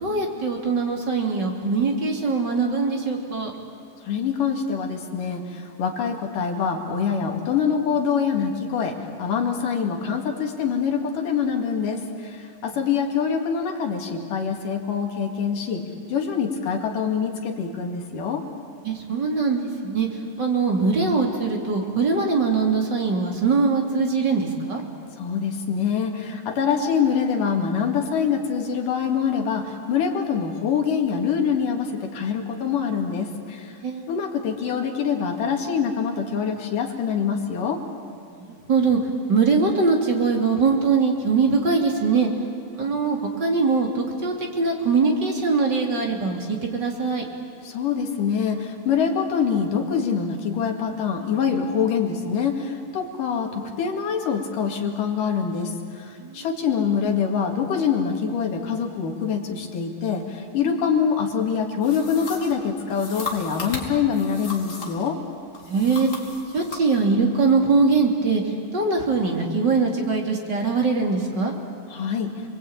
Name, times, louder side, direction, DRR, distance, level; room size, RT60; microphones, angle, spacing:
voice 1, 0.0-3.5 18.8-20.1 20.4-24.8 33.6-34.2 38.3-39.0 39.3-42.3 42.7-47.2 56.2-56.5 60.6-60.8 65.7-66.1 66.5-71.5, right 4 dB, 30° right, 0 dB, 3.3 m, -22 dB
voice 2, 4.0-15.8 16.1-18.4 25.2-33.8 34.1-37.8 47.6-65.2 71.9-72.3, left 6 dB, 70° left, 2 dB, 3.7 m, -25 dB
sound 1, 61.8-65.1 65.5-66.8, left 3 dB, 20° left, 3.2 m, -36 dB
30.0 x 22.0 x 8.9 m, 2.5 s
omnidirectional pair, 4.0 m